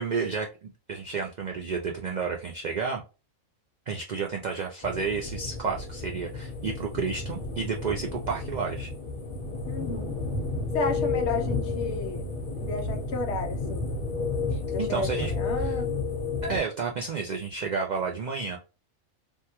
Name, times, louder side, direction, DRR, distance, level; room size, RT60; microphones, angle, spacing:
voice 1, 0.0-3.0 3.9-8.9 14.5-15.3 15.6-15.7 16.4-18.6, right 5 dB, 80° right, 0.4 m, -31 dB
sound 1, 4.8-16.6, left 3 dB, 40° left, 1.2 m, -31 dB
voice 2, 9.7-10.2 10.7-12.3 12.6-13.9 14.7-15.9, left 3 dB, 65° left, 0.8 m, -32 dB
3.5 x 2.2 x 2.8 m
omnidirectional pair, 1.3 m